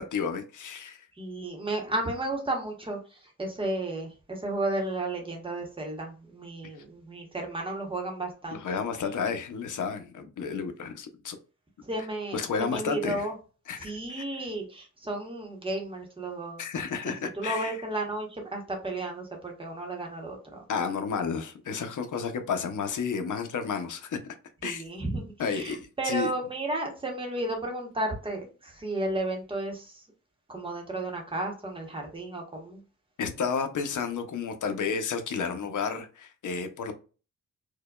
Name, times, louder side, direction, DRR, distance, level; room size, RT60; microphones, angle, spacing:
voice 1, 0.0-1.1 8.5-11.4 12.3-13.3 13.7-14.5 16.6-17.8 20.7-24.2 24.6-24.8 25.4-26.3 33.2-36.9, left 6 dB, 75° left, 0.7 m, -31 dB
voice 2, 1.2-8.6 11.8-13.3 13.8-16.6 17.0-20.6 24.6-30.0 30.5-32.8, right 2 dB, 15° right, 0.9 m, -33 dB
4.7 x 2.2 x 2.2 m
wide cardioid pair, 175°, 31 cm